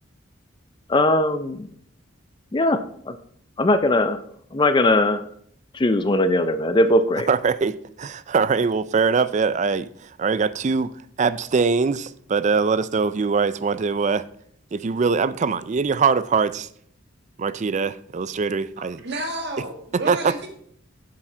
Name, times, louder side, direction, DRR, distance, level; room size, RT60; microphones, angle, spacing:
voice 1, 0.9-1.7 2.5-2.8 3.1-3.2 3.6-4.2 4.5-5.2 5.7-7.3, left 1 dB, 25° left, 0.4 m, -19 dB
voice 2, 7.3-9.9 10.2-10.9 11.2-14.3 14.7-16.7 17.4-19.0 20.1-20.3, right 5 dB, 35° right, 0.4 m, -22 dB
voice 3, 18.8-20.5, right 1 dB, 60° right, 1.6 m, -31 dB
7.4 x 7.4 x 4.4 m
head